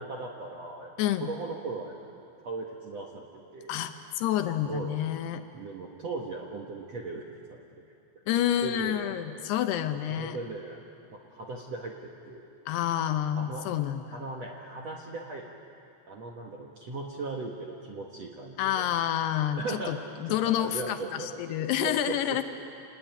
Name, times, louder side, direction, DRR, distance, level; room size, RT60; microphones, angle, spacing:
voice 1, 0.0-0.9 1.2-1.9 2.4-3.7 4.7-5.0 5.5-7.6 8.6-9.1 10.1-10.8 11.1-12.5 13.3-13.7 14.1-15.5 16.1-18.9 19.6-20.0 20.3-21.3 21.8-22.4, right 3 dB, 60° right, 0 dB, 1.8 m, -38 dB
voice 2, 1.0-1.3 3.7-5.4 8.3-10.4 12.7-14.2 18.6-20.0 20.2-22.4, left 11 dB, 75° left, 8 dB, 2.6 m, -28 dB
28.0 x 20.5 x 9.2 m, 2.6 s
omnidirectional pair, 5.2 m